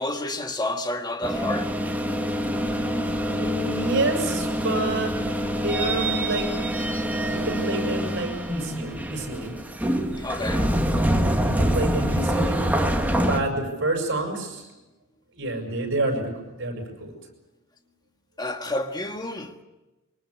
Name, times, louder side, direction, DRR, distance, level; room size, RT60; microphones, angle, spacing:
voice 1, 0.0-1.8 10.2-10.7 18.4-19.6, left 2 dB, 20° left, 1.8 m, -30 dB
sound 1, 1.2-13.4, equal, 5° right, 1.8 m, -25 dB
voice 2, 3.3-6.5 7.3-9.5 11.2-12.6 13.2-14.7 15.3-17.1, right 2 dB, 55° right, 6.9 m, -29 dB
24.0 x 20.0 x 8.4 m
head